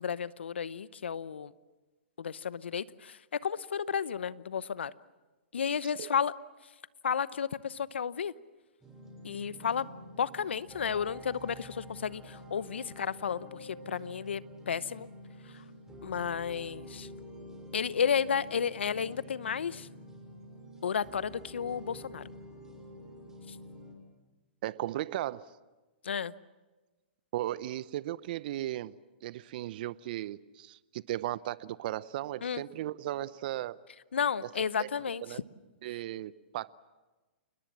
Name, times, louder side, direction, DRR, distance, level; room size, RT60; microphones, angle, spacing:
voice 1, 0.0-1.5 2.2-4.9 5.5-6.3 7.0-8.3 9.2-9.9 10.2-15.1 15.4-15.6 16.0-17.1 17.7-19.9 20.8-22.2 23.5-23.6 26.0-26.3 32.4-32.6 34.1-35.4, left 7 dB, 80° left, 0.8 m, -32 dB
sound 1, 8.8-23.9, equal, 10° right, 6.3 m, -48 dB
voice 2, 24.6-25.5 27.3-33.8 34.8-34.9 35.2-35.4 35.8-36.7, right 14 dB, 55° right, 0.8 m, -36 dB
29.0 x 21.0 x 7.4 m
hypercardioid pair, 125°, 6 cm